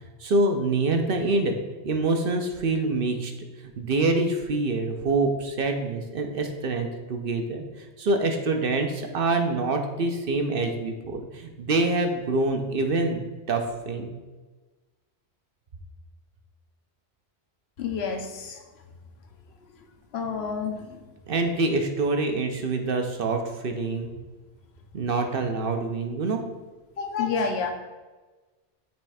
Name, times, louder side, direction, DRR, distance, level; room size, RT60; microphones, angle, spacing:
voice 1, 0.2-1.5 1.8-3.3 3.8-13.2 13.5-14.1 21.3-24.1 24.9-26.4, right 2 dB, 60° right, 4 dB, 0.9 m, -26 dB
voice 2, 17.8-18.6 20.1-21.0 27.0-27.7, left 5 dB, 75° left, 4 dB, 1.0 m, -29 dB
7.0 x 3.3 x 4.8 m, 1.3 s
omnidirectional pair, 1.1 m